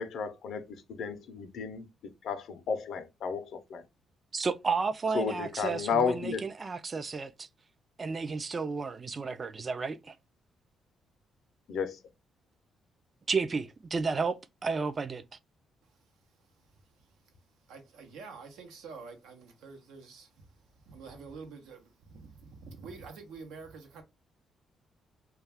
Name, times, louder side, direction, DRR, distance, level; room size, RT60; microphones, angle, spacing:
voice 1, 0.0-3.8 5.1-6.4 11.7-12.0, left 6 dB, 70° left, 0.5 m, -33 dB
voice 2, 4.3-7.5 8.0-10.1 13.3-15.2, right 4 dB, 35° right, 0.3 m, -32 dB
voice 3, 16.7-17.2 17.7-24.0, right 4 dB, 90° right, 0.7 m, -48 dB
2.2 x 2.2 x 3.3 m
cardioid pair, 90°, 0 cm